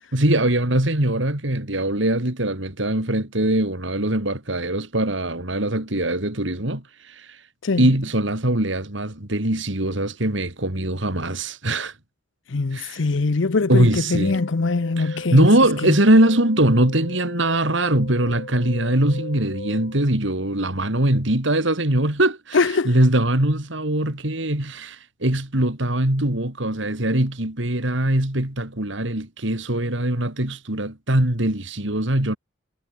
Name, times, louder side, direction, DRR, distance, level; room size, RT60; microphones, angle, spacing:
voice 1, 0.1-7.4 7.8-11.9 12.7-13.0 13.7-14.4 15.0-32.4, right 1 dB, 65° right, 3.2 m, -21 dB
voice 2, 12.5-15.5 15.8-15.9 22.5-22.9, left 3 dB, 65° left, 0.7 m, -22 dB
sound 1, 14.2-20.0, left 1 dB, 50° left, 4.2 m, -37 dB
head